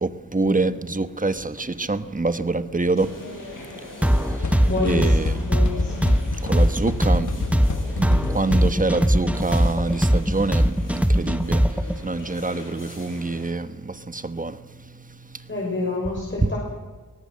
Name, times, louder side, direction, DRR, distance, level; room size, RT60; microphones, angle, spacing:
voice 1, 0.0-3.1 4.8-5.6 6.4-7.3 8.0-11.6 12.0-13.7 14.1-14.5, right 3 dB, 25° right, 1.3 m, -25 dB
sound 1, 3.0-13.5, left 2 dB, 85° left, 6.9 m, -41 dB
sound 2, 4.0-11.9, equal, 5° right, 1.2 m, -19 dB
sound 3, 4.4-9.0, left 4 dB, 65° left, 1.3 m, -31 dB
voice 2, 4.6-6.1 15.5-16.6, left 2 dB, 40° left, 6.4 m, -28 dB
23.5 x 18.5 x 7.9 m
wide cardioid pair, 70°, 31 cm